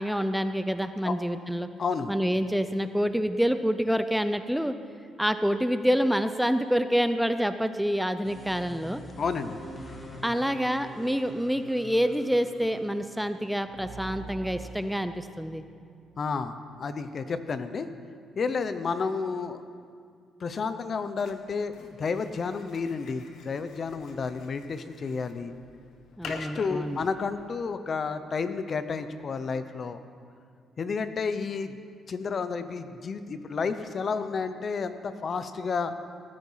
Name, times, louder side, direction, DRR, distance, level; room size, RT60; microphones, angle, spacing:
voice 1, 0.0-1.7 2.1-4.8 5.2-9.0 10.2-15.6 26.2-27.0, equal, ahead, 10 dB, 0.5 m, -27 dB
voice 2, 1.8-2.1 9.2-9.6 16.2-17.9 18.4-19.6 20.4-25.5 26.3-30.0 30.8-31.8 32.1-35.9, left 5 dB, 45° left, 11 dB, 0.8 m, -31 dB
sound 1, 8.2-13.6, equal, 20° left, 2.1 m, -45 dB
sound 2, 13.6-16.4, right 5 dB, 75° right, 3.3 m, -45 dB
sound 3, 21.2-27.5, left 4 dB, 75° left, 1.4 m, -48 dB
18.0 x 9.6 x 5.7 m, 2.2 s
cardioid pair, 90°, 0 cm